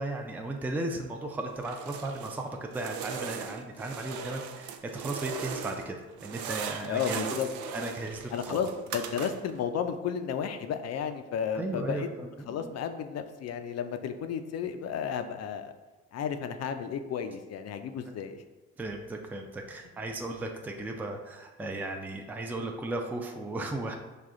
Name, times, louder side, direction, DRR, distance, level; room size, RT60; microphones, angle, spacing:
voice 1, 0.0-7.2 7.7-8.6 11.6-12.7 18.8-24.0, right 2 dB, 5° right, 2 dB, 0.4 m, -36 dB
sound 1, 1.6-2.4 2.7-5.9 6.2-9.6, right 7 dB, 70° right, 0.5 m, -39 dB
voice 2, 6.9-7.5 8.3-12.1 12.5-15.7 16.1-18.4, left 7 dB, 60° left, 8 dB, 0.4 m, -33 dB
4.9 x 2.3 x 3.7 m, 1.3 s
cardioid pair, 90°, 30 cm